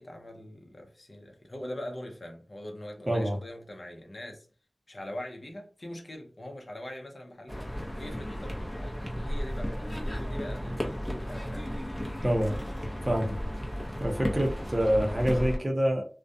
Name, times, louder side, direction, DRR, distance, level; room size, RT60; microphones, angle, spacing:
voice 1, 0.0-4.5 4.9-11.8, left 1 dB, 50° left, 0.6 m, -42 dB
voice 2, 3.1-3.4 12.2-12.6 13.0-13.4 14.0-16.1, equal, 25° right, 0.6 m, -26 dB
sound 1, 7.5-15.6, equal, 10° left, 0.7 m, -34 dB
2.4 x 2.1 x 2.6 m
wide cardioid pair, 65°, 0 cm